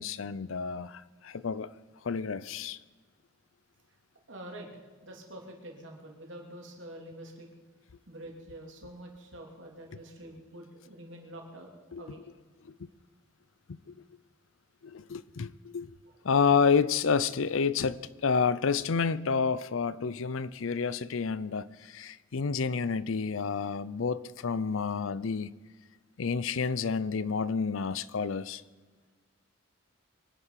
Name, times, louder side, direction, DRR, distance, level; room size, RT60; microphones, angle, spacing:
voice 1, 0.0-1.7 2.0-2.8 11.9-12.0 12.6-12.7 13.7-13.9 14.8-16.0 16.2-25.5 26.2-28.6, left 5 dB, 80° left, 0.5 m, -29 dB
voice 2, 4.3-4.7 5.0-7.5 8.1-11.7 12.0-12.2 16.1-16.2, right 1 dB, 65° right, 3.1 m, -46 dB
24.0 x 10.0 x 5.8 m
head